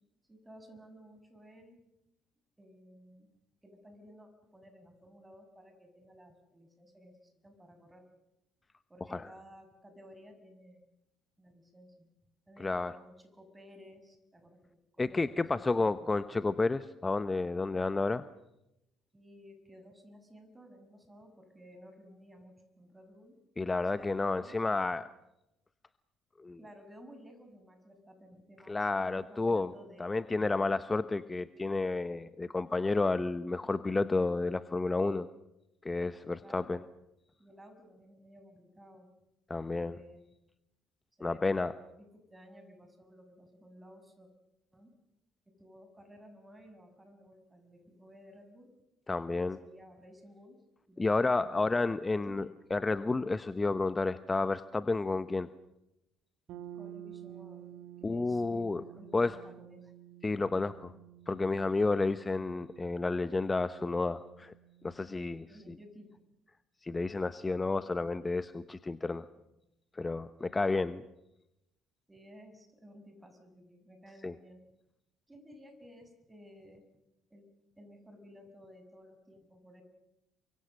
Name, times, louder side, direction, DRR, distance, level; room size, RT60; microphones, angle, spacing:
voice 1, 0.3-1.8 2.6-3.3 3.6-8.0 8.9-10.9 11.4-12.1 12.5-14.6 14.9-16.1 19.1-23.3 23.8-24.6 26.6-30.8 36.4-36.8 37.4-39.1 39.7-40.2 41.2-44.3 44.7-44.9 45.6-48.7 49.6-50.6 50.9-52.5 56.7-57.6 58.0-59.9 65.5-66.1 72.1-74.6 75.3-76.8 77.3-77.5 77.7-79.8, equal, 15° right, 7 dB, 6.4 m, -55 dB
voice 2, 12.6-13.0 15.0-18.2 23.6-25.1 26.4-26.6 28.7-29.7 30.0-35.3 35.8-36.8 39.5-39.9 41.2-41.7 49.1-49.6 51.0-55.5 58.0-58.8 59.1-59.3 60.2-60.9 61.3-64.5 64.8-65.8 66.8-69.3 69.9-71.0 74.2-74.3, left 3 dB, 20° left, 13 dB, 1.0 m, -31 dB
sound 1, 56.5-66.3, right 11 dB, 60° right, 1.9 m, -51 dB
29.0 x 24.5 x 6.6 m, 0.89 s
figure-of-eight pair, 55°, 0 cm